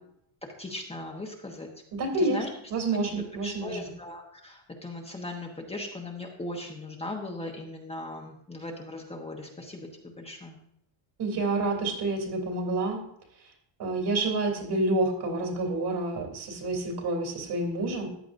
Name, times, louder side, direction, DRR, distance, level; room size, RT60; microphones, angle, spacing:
voice 1, 0.6-1.7 2.2-2.5 3.0-3.1 3.4-9.9 10.2-10.6, left 2 dB, 10° left, 0 dB, 1.2 m, -38 dB
voice 2, 2.0-2.4 2.7-3.8 11.2-13.0 13.8-18.1, right 2 dB, 55° right, 2 dB, 3.3 m, -28 dB
14.0 x 9.9 x 2.6 m, 0.75 s
cardioid pair, 140°, 48 cm